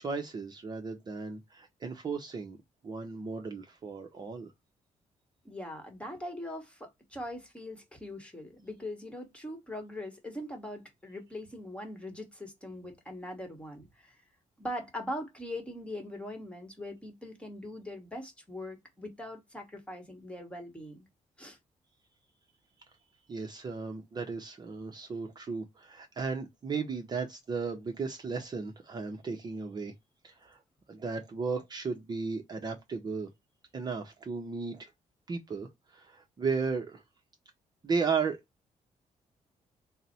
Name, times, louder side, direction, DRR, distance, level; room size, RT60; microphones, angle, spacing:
voice 1, 0.0-2.6 2.8-4.5 23.3-29.9 30.2-30.6 30.9-33.3 33.7-34.9 35.3-37.0 37.8-38.4, right 5 dB, 35° right, 0.6 m, -35 dB
voice 2, 5.4-14.1 14.6-21.0 21.4-21.6, left 1 dB, 10° left, 1.2 m, -41 dB
4.0 x 2.0 x 4.1 m
cardioid pair, 130°, 13 cm